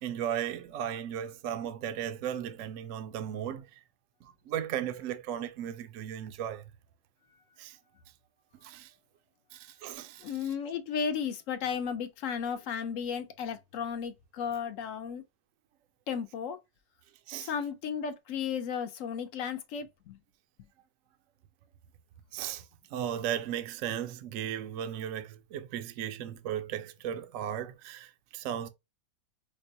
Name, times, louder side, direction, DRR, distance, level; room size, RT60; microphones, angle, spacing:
voice 1, 0.0-3.8 4.2-6.6 7.6-7.8 8.6-8.9 9.5-10.3 17.3-17.5 22.3-22.7 22.9-28.7, right 10 dB, 70° right, 0.8 m, -36 dB
voice 2, 10.2-15.2 16.1-16.6 17.4-20.2, left 7 dB, 70° left, 0.8 m, -34 dB
5.2 x 2.1 x 2.7 m
omnidirectional pair, 1.6 m